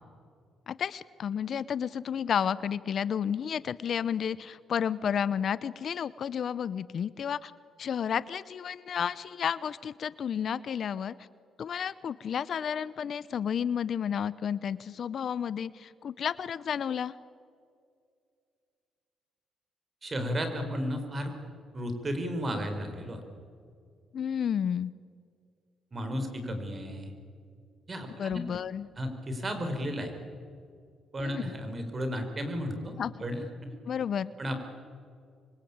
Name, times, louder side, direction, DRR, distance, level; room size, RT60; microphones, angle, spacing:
voice 1, 0.7-7.5 7.8-11.1 11.6-17.1 24.1-24.9 28.2-28.9 31.2-31.5 33.0-33.1 33.9-34.3, left 8 dB, 55° left, 17 dB, 0.7 m, -31 dB
voice 2, 20.0-21.3 21.7-23.2 25.9-27.1 27.9-28.4 29.0-30.1 31.1-32.9 33.2-33.7 34.4-34.6, equal, 30° right, 6 dB, 5.3 m, -33 dB
27.0 x 23.0 x 8.8 m, 2.3 s
cardioid pair, 90°, 0 cm